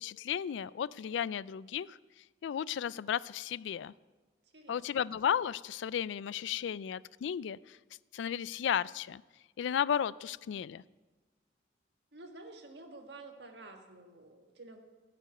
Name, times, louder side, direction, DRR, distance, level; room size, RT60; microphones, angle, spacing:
voice 1, 0.0-2.0 2.4-3.9 4.7-7.8 8.1-9.2 9.6-10.8, left 8 dB, 75° left, 20 dB, 0.3 m, -34 dB
voice 2, 4.5-5.1 12.1-14.8, right 2 dB, 65° right, 4 dB, 1.6 m, -50 dB
16.0 x 6.0 x 7.8 m, 1.3 s
head